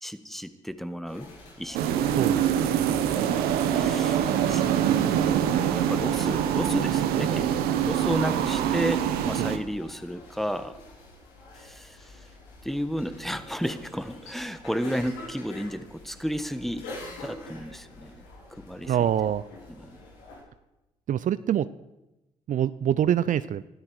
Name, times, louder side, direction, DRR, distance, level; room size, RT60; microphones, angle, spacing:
voice 1, 0.0-1.3 1.6-2.0 3.7-10.8 11.6-12.2 12.6-16.9 17.2-18.2 18.5-19.0 19.8-20.0, equal, ahead, 12 dB, 1.4 m, -33 dB
sound 1, 1.1-20.4, left 2 dB, 90° left, 3.6 m, -47 dB
sound 2, 1.7-9.6, right 9 dB, 80° right, 1.2 m, -24 dB
voice 2, 2.0-2.7 9.4-9.5 18.9-19.4 21.1-21.7 22.5-23.6, right 10 dB, 55° right, 15 dB, 0.5 m, -25 dB
20.5 x 13.0 x 4.8 m, 0.98 s
supercardioid pair, 55°, 16 cm